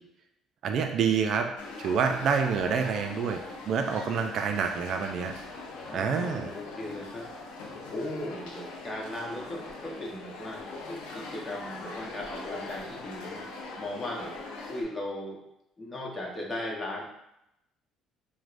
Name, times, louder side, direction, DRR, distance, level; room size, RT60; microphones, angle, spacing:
voice 1, 0.6-1.5 1.8-3.4 3.7-5.3 5.9-6.5, right 6 dB, 60° right, 5 dB, 0.3 m, -27 dB
sound 1, 1.6-14.8, left 3 dB, 90° left, 0.5 m, -42 dB
voice 2, 5.9-13.5 13.8-15.4 15.8-17.0, left 1 dB, 25° left, -3 dB, 0.9 m, -38 dB
4.6 x 2.1 x 2.5 m, 0.85 s
cardioid pair, 95°, 0 cm